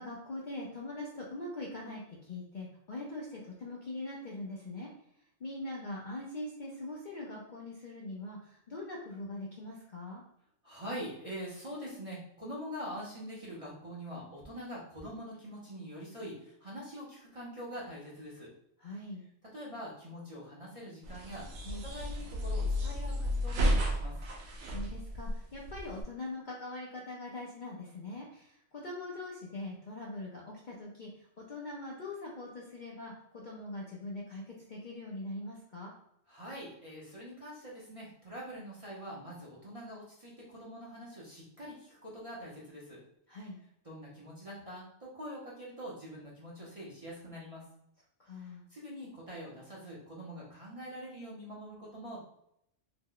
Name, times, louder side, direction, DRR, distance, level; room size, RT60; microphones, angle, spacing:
voice 1, 0.0-4.9 5.4-10.2 18.8-19.2 21.6-21.8 24.7-31.1 31.4-35.9 43.3-43.6 48.2-48.6, left 2 dB, 55° left, -3 dB, 0.5 m, -42 dB
voice 2, 10.6-18.5 19.5-21.5 21.8-24.2 36.3-43.0 43.8-47.7 48.4-52.2, equal, 35° right, -6 dB, 0.6 m, -44 dB
sound 1, 21.0-26.0, equal, 70° right, 0.9 m, -32 dB
2.8 x 2.1 x 3.7 m, 0.75 s
omnidirectional pair, 1.3 m